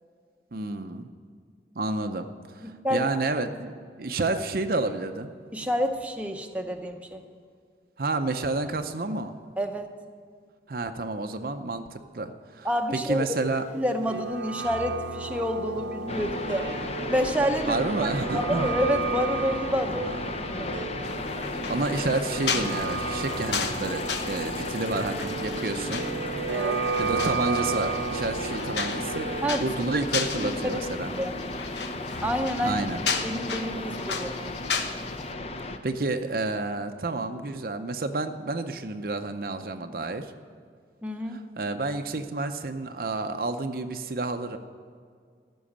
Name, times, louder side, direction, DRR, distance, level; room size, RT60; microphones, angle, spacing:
voice 1, 0.5-1.1 1.8-2.3 2.5-3.7 4.0-5.3 8.0-9.3 10.7-12.7 12.9-13.6 17.7-18.7 19.8-20.4 21.7-26.1 27.0-29.3 29.6-31.1 32.6-33.0 35.6-40.3 41.3-44.6, right 3 dB, 50° right, 7 dB, 0.6 m, -30 dB
voice 2, 2.6-3.1 5.5-7.2 9.6-9.9 12.6-13.4 13.7-16.7 17.1-20.1 20.3-20.9 26.5-26.8 29.4-29.6 30.4-30.8 31.1-31.3 32.2-32.8 33.2-34.5 41.0-41.4, equal, 10° right, 3 dB, 0.7 m, -29 dB
sound 1, 13.3-29.5, right 4 dB, 85° right, 0.9 m, -33 dB
sound 2, 16.1-35.8, left 2 dB, 35° left, 0.6 m, -35 dB
sound 3, 21.0-35.3, left 5 dB, 75° left, 1.0 m, -35 dB
14.5 x 6.3 x 8.6 m, 2.1 s
head